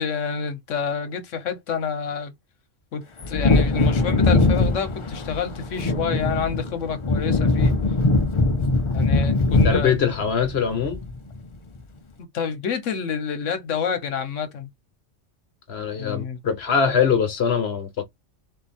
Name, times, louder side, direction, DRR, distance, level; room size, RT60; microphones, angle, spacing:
voice 1, 0.0-2.3 2.9-7.7 8.9-10.1 12.3-14.7 15.9-16.4, left 6 dB, 80° left, 1.3 m, -28 dB
Wind / Thunder, 3.2-11.5 11.8-11.9, left 3 dB, 35° left, 0.5 m, -21 dB
voice 2, 9.6-11.0 15.7-18.0, left 6 dB, 60° left, 1.2 m, -22 dB
3.9 x 2.8 x 4.1 m
omnidirectional pair, 1.3 m